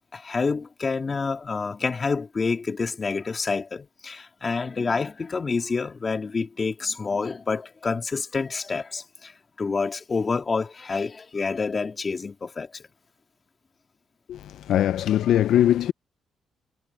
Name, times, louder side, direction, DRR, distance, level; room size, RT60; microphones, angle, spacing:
voice 1, 0.1-12.9, left 4 dB, 35° left, 3.0 m, -28 dB
voice 2, 14.3-15.9, left 11 dB, 75° left, 0.4 m, -21 dB
cardioid pair, 90°, 0 cm